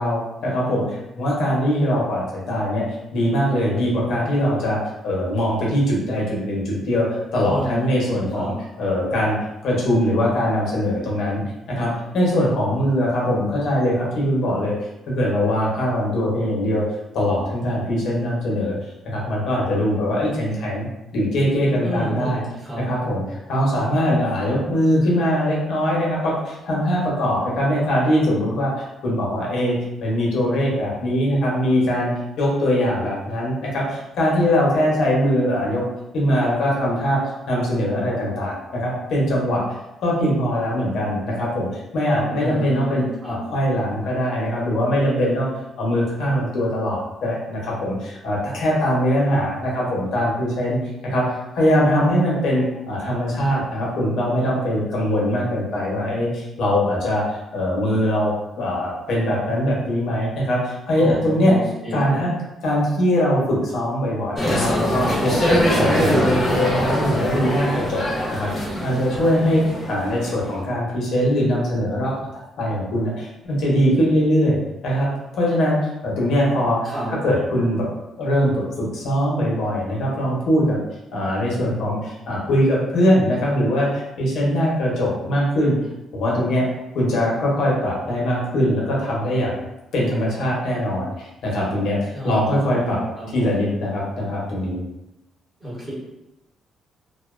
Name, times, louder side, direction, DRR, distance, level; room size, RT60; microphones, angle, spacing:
voice 1, 0.0-2.9 3.1-9.4 9.6-11.4 11.7-14.7 15.1-16.8 17.1-18.7 19.0-20.9 21.1-22.4 22.8-32.1 32.4-35.8 36.1-39.6 40.0-45.5 45.8-50.8 51.0-61.6 61.9-62.3 62.6-72.3 72.6-74.6 74.8-75.1 75.3-77.9 78.2-80.8 81.1-85.8 86.1-86.7 86.9-89.6 89.9-93.0 93.3-94.8, equal, 65° left, -4 dB, 0.7 m, -22 dB
voice 2, 7.5-8.6 21.8-22.9 42.3-43.4 61.0-62.2 76.8-77.1 92.1-93.6 95.6-95.9, right 1 dB, 20° right, -8 dB, 1.0 m, -30 dB
sound 1, 64.4-70.5, equal, 25° left, 0.7 m, -22 dB
2.4 x 2.1 x 2.4 m, 0.92 s
cardioid pair, 150°, 0 cm